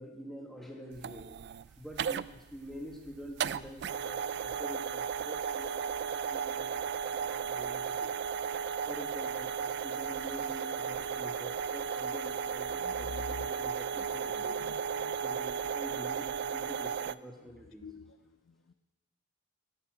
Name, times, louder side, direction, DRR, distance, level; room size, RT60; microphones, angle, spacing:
voice 1, 0.0-8.2 8.9-14.6 15.2-17.8, equal, ahead, 1.8 m, -47 dB
sound 1, 0.9-17.1, right 7 dB, 55° right, 0.3 m, -35 dB
voice 2, 12.8-13.5 14.3-15.2 17.8-18.1, left 4 dB, 85° left, 0.5 m, -45 dB
15.5 x 5.7 x 7.8 m
head